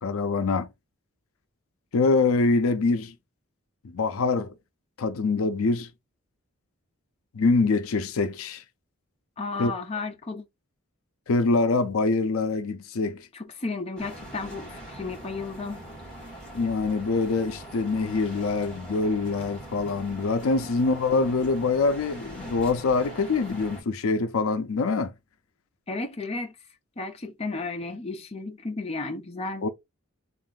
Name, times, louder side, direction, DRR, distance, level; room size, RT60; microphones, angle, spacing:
voice 1, 0.0-0.7 1.9-3.1 3.8-4.5 5.0-5.9 7.3-8.6 9.6-9.7 11.3-13.3 16.5-25.1 29.6-29.7, left 3 dB, 75° left, 0.5 m, -24 dB
voice 2, 9.4-10.4 13.3-15.8 25.9-26.6 27.0-29.7, left 3 dB, 30° left, 0.6 m, -33 dB
sound 1, 14.0-23.8, right 1 dB, 5° left, 1.9 m, -42 dB
3.6 x 2.5 x 3.8 m
head